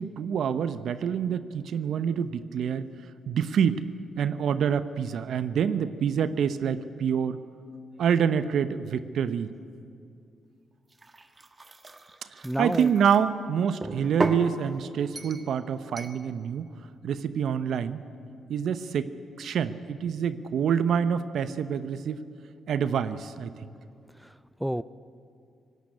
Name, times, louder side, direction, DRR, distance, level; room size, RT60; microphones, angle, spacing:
voice 1, 0.0-2.9 3.3-3.9 4.2-7.4 8.0-9.5 12.6-16.7 17.0-18.0 18.5-19.1 19.4-22.2 22.7-23.5, right 7 dB, 70° right, 13 dB, 0.8 m, -26 dB
sound 1, 10.9-13.2 13.8-14.5 15.2-15.5 16.0-16.2, right 2 dB, 30° right, 1.6 m, -35 dB
voice 2, 12.4-12.9 24.2-24.8, equal, 5° right, 16 dB, 0.6 m, -30 dB
18.0 x 15.5 x 9.8 m, 2.4 s
supercardioid pair, 50°, 0 cm